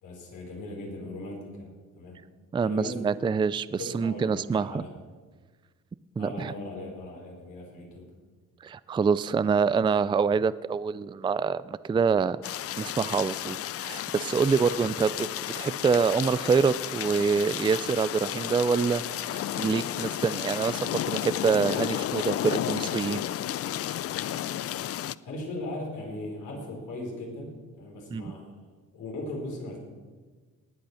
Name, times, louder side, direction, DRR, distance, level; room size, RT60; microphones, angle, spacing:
voice 1, 0.0-2.2 2.6-3.1 3.7-4.9 6.2-8.0 25.2-28.5 28.9-29.8, left 1 dB, 85° left, 0 dB, 4.7 m, -38 dB
voice 2, 2.5-4.8 6.2-6.5 8.6-12.4 12.8-15.3 15.6-23.2 28.1-28.3, right 5 dB, 15° right, 16 dB, 0.4 m, -26 dB
sound 1, 12.4-25.1, left 11 dB, 50° left, 0.5 m, -32 dB
19.0 x 8.7 x 6.5 m, 1.4 s
cardioid pair, 90°, 30 cm